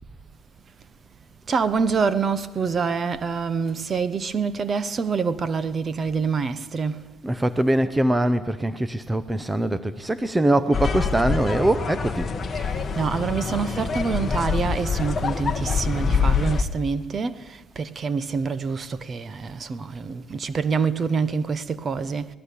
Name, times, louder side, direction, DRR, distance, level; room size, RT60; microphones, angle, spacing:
voice 1, 1.5-7.0 12.6-12.7 13.0-17.4 17.8-22.3, right 5 dB, 30° right, 1.0 m, -26 dB
voice 2, 7.2-12.3, right 1 dB, 10° right, 0.8 m, -22 dB
sound 1, 10.7-16.6, left 5 dB, 25° left, 1.7 m, -25 dB
26.0 x 19.0 x 8.5 m
cardioid pair, 145°, 0 cm